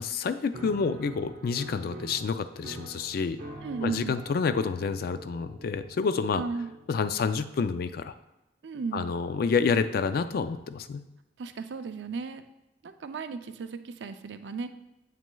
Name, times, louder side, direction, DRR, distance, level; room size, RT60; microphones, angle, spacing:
voice 1, 0.0-3.4 3.8-6.4 6.9-8.1 8.9-11.0, left 5 dB, 55° left, 12 dB, 0.3 m, -28 dB
Piano, 0.5-7.3, right 2 dB, 55° right, 0.9 m, -45 dB
voice 2, 3.6-4.2 6.3-6.7 8.6-9.1 11.4-12.4 12.8-14.7, right 4 dB, 75° right, 9 dB, 0.4 m, -35 dB
7.5 x 6.1 x 2.3 m, 0.95 s
head